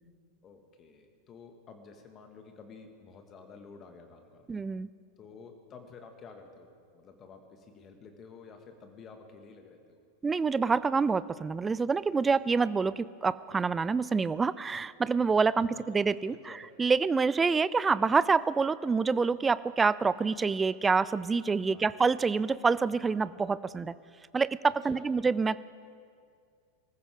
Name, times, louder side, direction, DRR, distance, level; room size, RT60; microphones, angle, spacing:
voice 1, 0.4-4.5 5.2-6.7 6.9-10.0 15.6-15.8 16.3-16.7 21.7-22.1 24.8-25.1, left 5 dB, 30° left, 5 dB, 1.9 m, -51 dB
voice 2, 4.5-4.9 10.2-16.5 16.8-23.9 24.3-25.6, right 4 dB, 15° right, 17 dB, 0.4 m, -27 dB
24.5 x 14.5 x 3.7 m, 2.2 s
figure-of-eight pair, 90°, 0 cm